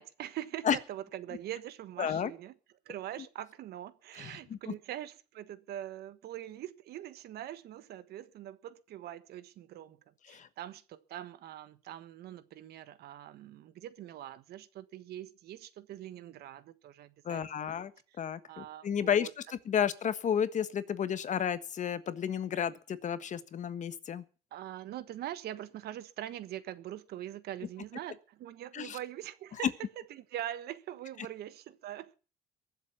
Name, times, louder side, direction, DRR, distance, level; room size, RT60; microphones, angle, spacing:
voice 1, 0.0-2.5 2.8-10.0 10.3-17.8 18.1-18.2 18.4-19.3 19.7-19.8 24.5-29.7 30.1-32.2, right 12 dB, 70° right, 1.4 m, -43 dB
voice 2, 2.0-2.3 4.2-4.7 10.3-10.5 17.2-17.9 18.2-24.2 28.7-29.0, left 8 dB, 45° left, 1.4 m, -32 dB
22.5 x 7.5 x 6.0 m
cardioid pair, 110°, 17 cm